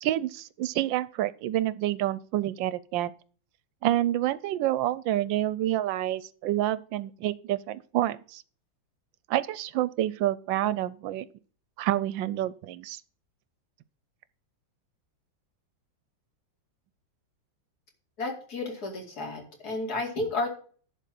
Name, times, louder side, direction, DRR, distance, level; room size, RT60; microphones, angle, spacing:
voice 1, 0.0-3.1 3.8-8.4 9.3-11.3 11.8-13.0, right 13 dB, 75° right, 1.3 m, -28 dB
voice 2, 18.2-20.5, left 2 dB, 50° left, 2.8 m, -32 dB
11.0 x 4.0 x 7.6 m
omnidirectional pair, 2.1 m